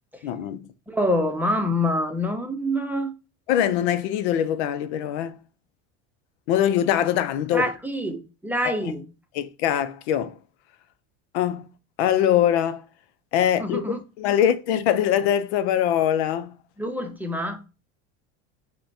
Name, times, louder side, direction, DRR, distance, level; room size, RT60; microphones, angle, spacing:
voice 1, 0.2-0.7 3.5-5.4 6.5-7.7 8.8-8.9 9.3-10.3 11.3-11.7 12.0-12.8 13.3-16.5, left 10 dB, 90° left, 0.5 m, -23 dB
voice 2, 0.9-3.1 7.5-9.0 13.6-14.0 16.8-17.6, left 1 dB, 5° right, 0.6 m, -26 dB
5.6 x 2.2 x 2.6 m
supercardioid pair, 115°, 32 cm